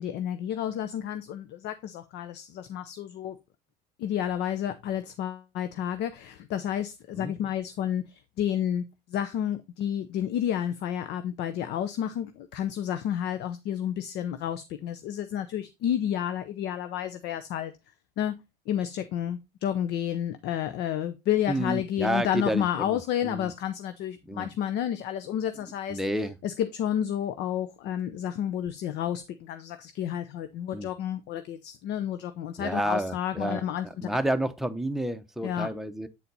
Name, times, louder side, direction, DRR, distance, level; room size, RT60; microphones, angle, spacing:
voice 1, 0.0-3.4 4.0-17.7 18.2-18.3 18.7-26.0 26.4-34.1 35.4-35.7, left 10 dB, 60° left, 0.7 m, -31 dB
voice 2, 21.5-23.5 24.3-24.5 25.9-26.4 30.7-30.9 32.6-33.6 34.0-36.1, right 1 dB, ahead, 0.8 m, -30 dB
8.4 x 4.2 x 4.0 m
supercardioid pair, 100°, 20 cm